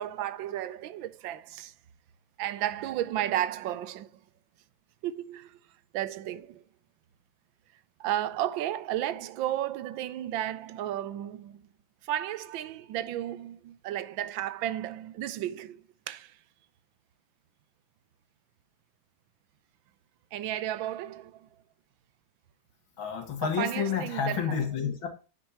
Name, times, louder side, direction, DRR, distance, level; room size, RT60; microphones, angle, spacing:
voice 1, 0.0-1.7 2.4-4.1 5.0-5.6 5.9-6.6 8.0-11.6 12.0-16.4 20.3-21.5 23.4-24.6, right 12 dB, 80° right, 1.4 m, -33 dB
voice 2, 23.0-25.1, left 7 dB, 80° left, 2.5 m, -30 dB
9.0 x 8.9 x 2.9 m
omnidirectional pair, 2.1 m